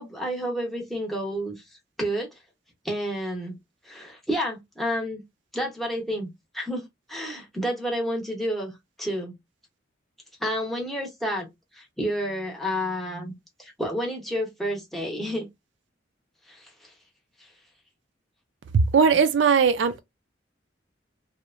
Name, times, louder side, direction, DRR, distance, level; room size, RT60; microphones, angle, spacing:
voice 1, 0.0-1.6 2.0-2.4 2.8-3.6 3.8-5.2 5.5-8.7 9.0-9.4 10.4-13.3 13.6-15.5 16.5-16.9 17.4-17.5, equal, ahead, 0.7 m, -30 dB
voice 2, 18.7-20.0, right 6 dB, 75° right, 0.4 m, -19 dB
2.8 x 2.0 x 2.4 m
head